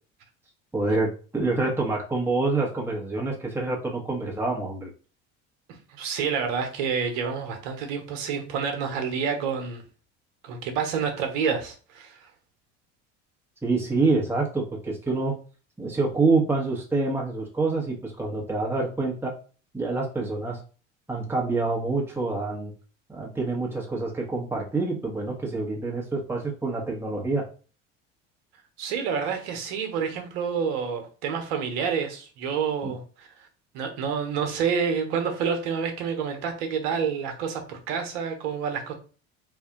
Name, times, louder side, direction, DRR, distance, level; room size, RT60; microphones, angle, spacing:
voice 1, 0.7-4.9 13.6-15.3 15.8-19.3 19.7-20.6 21.1-22.7 23.1-27.4 32.8-32.9, right 3 dB, 5° right, 1.2 m, -26 dB
voice 2, 5.7-9.8 10.4-12.3 28.8-33.5 33.7-38.9, right 6 dB, 70° right, 1.1 m, -28 dB
3.4 x 2.6 x 3.8 m
hypercardioid pair, 75°, 36 cm